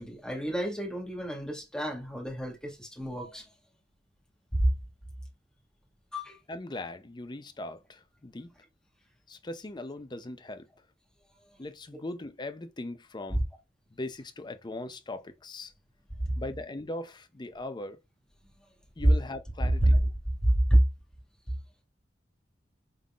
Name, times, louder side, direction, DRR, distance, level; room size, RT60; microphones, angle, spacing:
voice 1, 0.0-3.4 4.5-4.7 6.1-6.4 19.6-20.0 20.4-20.8, right 1 dB, 5° left, 1.8 m, -27 dB
voice 2, 6.5-8.5 9.3-10.7 11.6-13.4 13.9-15.7 16.4-18.0 19.0-19.9, left 2 dB, 25° left, 0.6 m, -39 dB
5.5 x 3.8 x 2.4 m
head